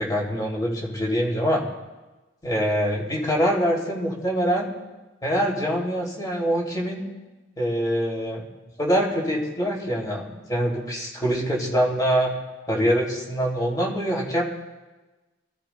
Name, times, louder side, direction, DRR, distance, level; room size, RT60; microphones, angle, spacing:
voice 1, 0.0-1.6 2.4-4.7 5.2-7.0 7.6-8.4 8.8-12.3 12.7-14.4, equal, 20° left, -3 dB, 2.9 m, -24 dB
27.0 x 15.5 x 2.3 m, 1.2 s
head